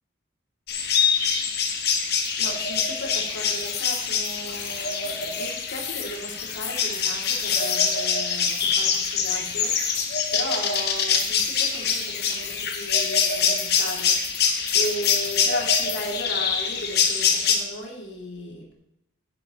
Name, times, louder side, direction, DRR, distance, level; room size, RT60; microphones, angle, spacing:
sound 1, 0.7-17.6, left 6 dB, 55° left, 1.3 m, -24 dB
sound 2, 2.2-16.2, left 8 dB, 35° left, 0.9 m, -38 dB
voice 1, 2.4-9.9 10.3-18.7, left 1 dB, 70° left, -1 dB, 2.9 m, -36 dB
10.5 x 9.8 x 3.1 m, 0.77 s
head